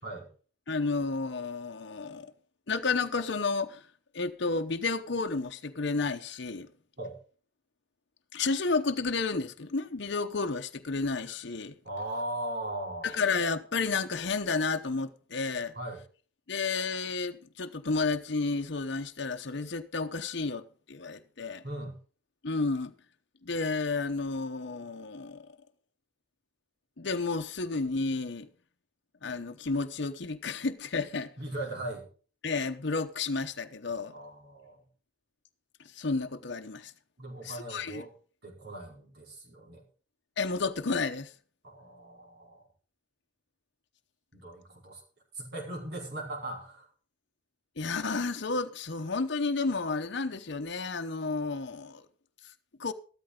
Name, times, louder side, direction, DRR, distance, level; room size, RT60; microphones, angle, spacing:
voice 1, 0.7-2.3 2.7-3.8 4.1-6.7 8.3-11.7 13.0-15.7 16.5-21.6 22.4-22.9 23.4-25.5 27.0-28.5 29.2-31.3 32.4-34.1 35.9-36.9 37.4-38.0 40.4-41.3 47.8-52.0 52.8-52.9, left 4 dB, 60° left, 0.9 m, -31 dB
voice 2, 11.8-13.2 15.7-16.0 21.6-22.0 31.4-32.1 34.1-34.8 37.2-38.1 38.4-39.8 41.6-42.6 44.3-45.0 45.3-46.9, right 1 dB, 55° right, 4.7 m, -38 dB
13.5 x 13.0 x 3.8 m
head